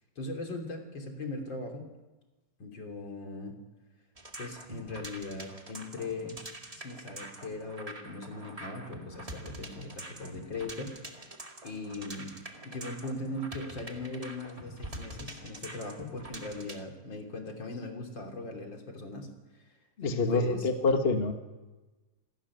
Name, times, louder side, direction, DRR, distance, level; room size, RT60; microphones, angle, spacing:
voice 1, 0.2-1.9 2.6-3.5 4.4-6.4 6.8-12.3 12.6-19.3 20.1-20.7, left 2 dB, 35° left, 3 dB, 3.6 m, -39 dB
sound 1, 4.1-16.8, right 1 dB, 15° right, 1.4 m, -45 dB
voice 2, 20.0-21.3, left 3 dB, 60° left, 5 dB, 0.6 m, -26 dB
28.0 x 13.0 x 9.7 m, 1.2 s
omnidirectional pair, 3.7 m